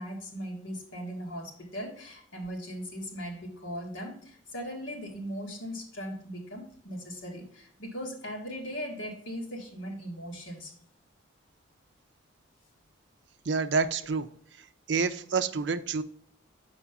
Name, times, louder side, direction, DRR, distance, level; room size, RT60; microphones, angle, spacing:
voice 1, 0.0-10.7, equal, 75° left, 0 dB, 1.9 m, -39 dB
voice 2, 13.5-14.3 14.9-16.0, right 4 dB, 60° right, 11 dB, 0.5 m, -28 dB
7.0 x 4.9 x 3.6 m, 0.63 s
head